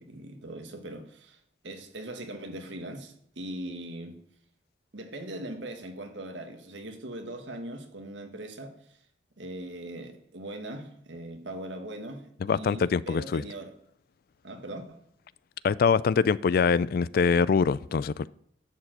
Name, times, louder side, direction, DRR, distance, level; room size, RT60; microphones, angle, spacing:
voice 1, 0.0-4.2 4.9-9.0 9.4-13.7 14.4-15.0, right 1 dB, 85° right, 1.6 m, -40 dB
voice 2, 12.4-13.4 15.6-18.3, left 5 dB, 55° left, 0.3 m, -24 dB
11.0 x 4.8 x 7.7 m
head